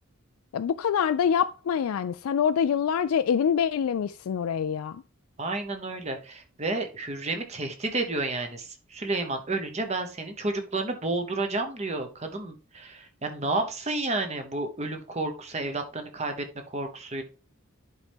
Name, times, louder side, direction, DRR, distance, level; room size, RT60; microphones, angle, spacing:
voice 1, 0.5-5.0, left 7 dB, 85° left, 0.3 m, -25 dB
voice 2, 5.4-17.2, right 2 dB, 30° right, 1.0 m, -31 dB
11.0 x 4.2 x 3.5 m
head